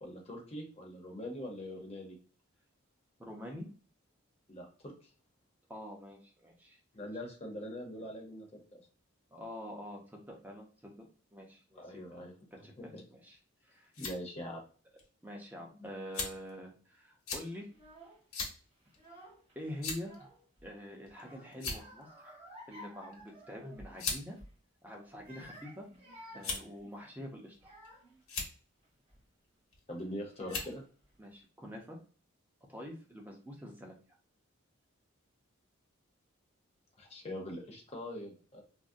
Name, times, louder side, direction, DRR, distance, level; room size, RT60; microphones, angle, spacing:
voice 1, 0.0-2.1 4.5-4.9 6.9-8.8 11.8-13.0 14.0-14.6 29.9-30.8 37.0-38.6, left 1 dB, 30° left, 0 dB, 0.7 m, -43 dB
voice 2, 3.2-3.7 5.7-6.8 9.3-12.2 12.6-13.4 13.6-13.9 15.2-17.7 19.6-20.1 20.6-22.4 22.7-24.4 24.8-25.9 26.3-27.7 31.2-32.0 32.7-33.9, equal, 10° right, 0 dB, 0.6 m, -46 dB
sound 1, 13.6-14.2 15.0-15.1 16.1-16.5 17.3-17.5 18.3-18.6 18.9-19.1 19.8-20.2 21.1-21.2 21.5-22.0 23.1-23.3 24.0-24.2 25.1-25.6 26.4-26.8 27.5-27.9 28.2-28.5 29.7-30.0 30.5-30.7, left 4 dB, 75° left, 0.9 m, -38 dB
Child speech kid speaking / Crying sobbing, 17.7-18.2 18.9-19.5 19.9-20.7 21.1-24.0 24.3-24.6 25.1-28.2 28.8-29.2 30.0-30.1 30.3-31.0, equal, 25° right, 1.2 m, -54 dB
3.5 x 2.0 x 2.6 m, 0.40 s
head